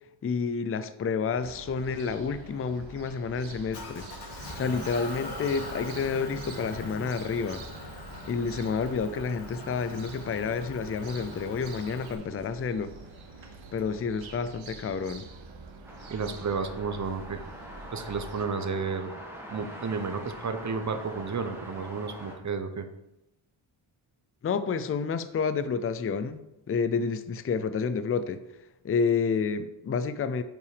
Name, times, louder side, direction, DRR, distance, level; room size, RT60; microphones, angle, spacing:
voice 1, 0.2-4.1 4.5-7.6 8.3-12.9 13.7-15.3 24.4-28.4 28.8-30.4, left 5 dB, 30° left, 11 dB, 0.5 m, -29 dB
sound 1, 1.4-18.4, right 3 dB, 70° right, 1.2 m, -46 dB
Motor vehicle (road) / Engine, 3.7-12.1, left 2 dB, 55° left, 2.6 m, -42 dB
sound 2, 15.8-22.4, equal, 5° right, 1.6 m, -44 dB
voice 2, 16.1-17.4 17.9-19.1 19.5-22.9, right 5 dB, 35° right, 8 dB, 0.9 m, -32 dB
9.1 x 5.7 x 5.0 m, 0.91 s
wide cardioid pair, 140°, 48 cm